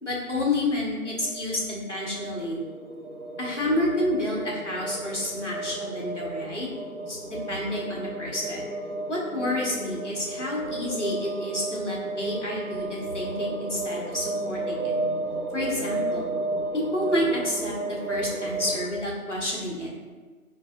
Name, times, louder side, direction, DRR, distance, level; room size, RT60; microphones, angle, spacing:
voice 1, 0.0-2.6 3.4-6.7 7.1-8.7 9.1-14.9 15.5-16.3 16.7-19.9, left 1 dB, 50° left, -4 dB, 1.0 m, -29 dB
sound 1, 0.9-18.8, right 2 dB, 85° right, 0.9 m, -33 dB
5.1 x 2.7 x 2.3 m, 1.4 s
figure-of-eight pair, 175°, 44 cm